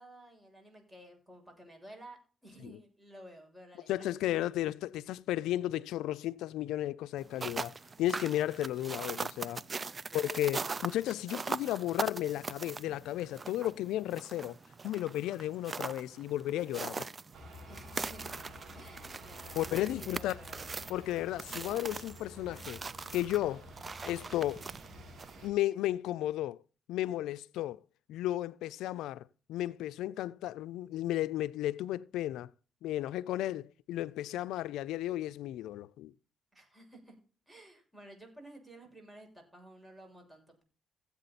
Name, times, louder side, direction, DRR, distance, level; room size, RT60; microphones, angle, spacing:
voice 1, 0.0-4.3 9.8-10.5 17.7-18.4 18.7-20.7 36.5-37.2 37.5-40.6, right 1 dB, 10° right, 7.2 m, -53 dB
voice 2, 3.9-9.6 10.1-14.6 14.8-17.1 19.5-20.4 20.9-22.8 23.1-23.7 24.1-24.6 25.4-26.6 26.9-27.8 28.1-32.5 32.8-36.1, left 14 dB, 90° left, 0.4 m, -34 dB
sound 1, 7.2-25.5, right 4 dB, 30° right, 0.6 m, -41 dB
sound 2, 17.3-25.5, equal, 50° right, 6.6 m, -51 dB
16.0 x 8.4 x 4.1 m
cardioid pair, 90°, 0 cm